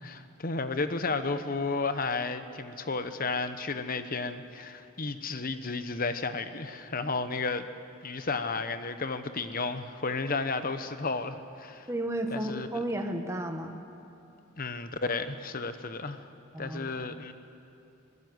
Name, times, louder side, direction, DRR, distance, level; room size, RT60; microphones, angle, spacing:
voice 1, 0.0-7.7 8.0-11.9 12.3-12.7 14.6-16.3 16.6-17.3, left 3 dB, 45° left, 10 dB, 1.1 m, -32 dB
voice 2, 11.9-13.8 16.5-17.0, right 1 dB, 15° right, 4 dB, 1.5 m, -33 dB
25.5 x 18.0 x 8.0 m, 2.7 s
head